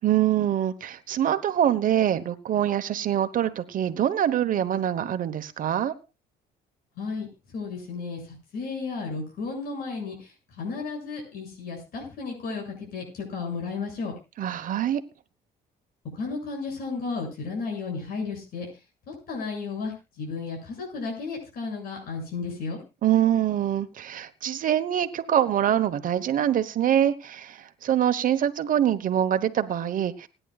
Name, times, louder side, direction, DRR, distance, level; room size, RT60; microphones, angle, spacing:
voice 1, 0.0-5.9 14.4-15.0 23.0-30.3, right 10 dB, 55° right, 1.2 m, -24 dB
voice 2, 7.0-7.3 7.5-8.2 8.5-10.2 10.6-14.1 16.1-18.7 19.3-22.8, left 4 dB, 65° left, 7.2 m, -33 dB
27.5 x 10.0 x 2.4 m
cardioid pair, 110°, 17 cm